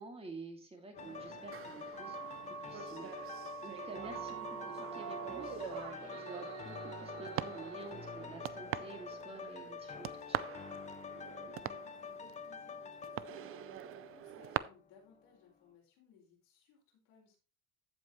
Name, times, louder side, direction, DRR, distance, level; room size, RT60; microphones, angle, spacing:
voice 1, 0.0-10.5, right 3 dB, 15° right, 3 dB, 2.3 m, -50 dB
sound 1, 0.9-14.7 15.1-15.2, left 6 dB, 20° left, 0.5 m, -47 dB
sound 2, 1.0-14.6, right 13 dB, 40° right, 0.4 m, -45 dB
sound 3, 1.9-7.9, right 8 dB, 70° right, 2.4 m, -46 dB
voice 2, 11.2-17.4, left 5 dB, 90° left, -1 dB, 4.9 m, -63 dB
15.0 x 5.3 x 3.0 m, 0.33 s
cardioid pair, 135°, 37 cm